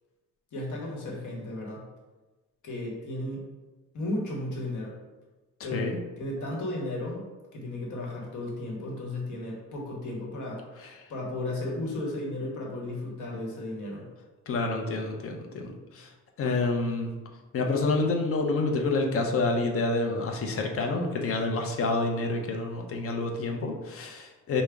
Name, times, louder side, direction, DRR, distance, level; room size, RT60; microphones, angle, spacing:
voice 1, 0.5-1.8 2.6-3.4 3.9-5.0 5.6-7.2 7.5-10.6 11.1-14.1, left 1 dB, 75° left, -2 dB, 1.0 m, -34 dB
voice 2, 14.5-16.1 16.4-17.1 17.5-24.6, left 3 dB, 45° left, 2 dB, 0.6 m, -28 dB
4.9 x 2.1 x 3.4 m, 1.2 s
cardioid pair, 135°, 31 cm